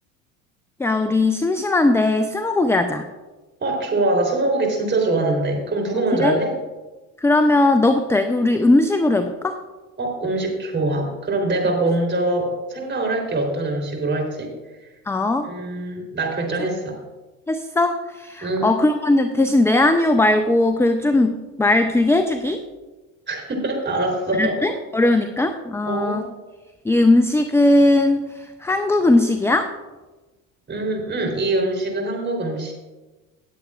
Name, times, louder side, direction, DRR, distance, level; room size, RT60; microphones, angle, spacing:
voice 1, 0.8-3.1 5.9-6.3 7.2-9.6 15.1-15.5 17.5-22.6 24.4-26.3 26.8-29.7, left 2 dB, 5° left, 9 dB, 0.5 m, -19 dB
voice 2, 3.6-6.5 10.0-14.5 15.4-17.0 18.4-18.7 23.3-24.7 25.9-26.2 30.7-32.7, right 2 dB, 25° right, 0 dB, 3.6 m, -23 dB
19.0 x 7.9 x 2.4 m, 1.2 s
hypercardioid pair, 80°, 42 cm